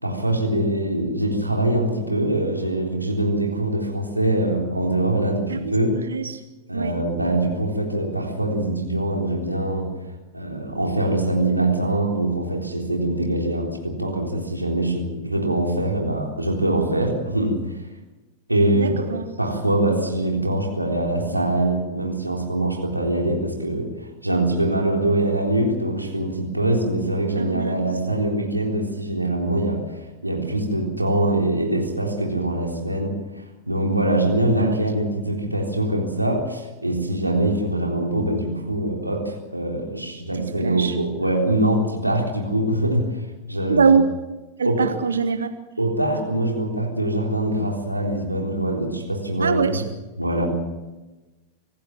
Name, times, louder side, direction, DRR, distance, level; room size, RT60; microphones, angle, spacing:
voice 1, 0.0-6.0 6.7-9.9 10.3-17.6 18.5-19.1 19.4-43.9 44.6-44.9 45.8-49.7 50.2-50.5, right 1 dB, 85° right, 0 dB, 3.7 m, -23 dB
voice 2, 5.5-6.4 6.7-7.0 18.7-19.3 27.4-27.8 34.5-34.8 40.3-41.0 43.7-44.0 44.6-45.5 49.4-49.8, right 5 dB, 70° right, 10 dB, 1.1 m, -23 dB
26.0 x 15.0 x 7.6 m, 1.1 s
figure-of-eight pair, 90°, 0 cm